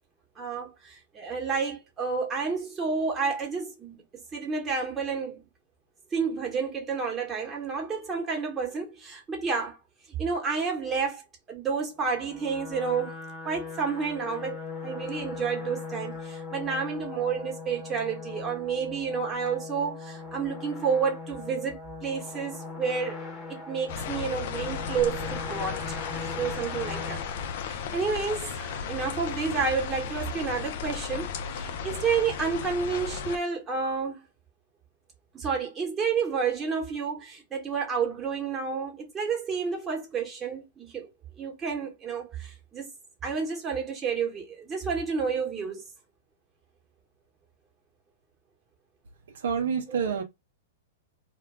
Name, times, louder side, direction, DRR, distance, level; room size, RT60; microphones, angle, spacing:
voice 1, 0.4-4.0 4.3-5.4 6.1-9.8 10.2-13.2 13.4-23.2 23.5-26.0 26.4-27.2 27.6-34.3 35.3-41.1 41.4-42.9 43.2-45.8 49.9-50.0, right 5 dB, 20° right, 1.1 m, -30 dB
sound 1, 12.1-28.4, left 4 dB, 20° left, 1.0 m, -40 dB
sound 2, 23.9-33.4, left 7 dB, 60° left, 0.4 m, -35 dB
voice 2, 49.4-50.2, right 6 dB, 75° right, 0.6 m, -27 dB
2.2 x 2.2 x 3.3 m
hypercardioid pair, 120°, 0 cm